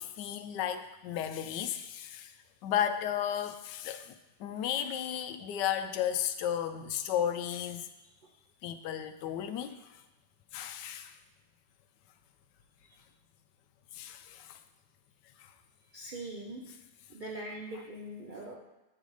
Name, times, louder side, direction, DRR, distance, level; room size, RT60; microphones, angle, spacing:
voice 1, 0.0-2.3 2.6-7.9 8.6-9.8 10.5-11.2 13.9-14.6 15.4-15.5, left 9 dB, 85° left, 9 dB, 1.2 m, -34 dB
voice 2, 15.9-16.6 17.1-18.6, right 1 dB, 55° right, -2 dB, 0.5 m, -42 dB
8.8 x 3.9 x 4.8 m, 1.0 s
omnidirectional pair, 1.8 m